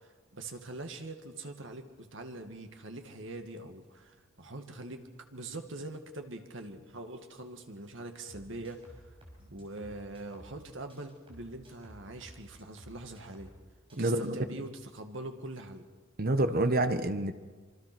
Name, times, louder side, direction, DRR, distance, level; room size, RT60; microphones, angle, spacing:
voice 1, 0.0-9.0 9.5-13.5 14.0-15.9, right 2 dB, 65° right, 6 dB, 2.2 m, -43 dB
sound 1, 8.3-10.6 10.9-13.6 13.9-14.3, equal, 25° right, 5.9 m, -54 dB
voice 2, 14.0-14.4 16.2-17.3, right 2 dB, 45° right, 10 dB, 1.3 m, -27 dB
26.5 x 24.5 x 6.2 m, 1.4 s
head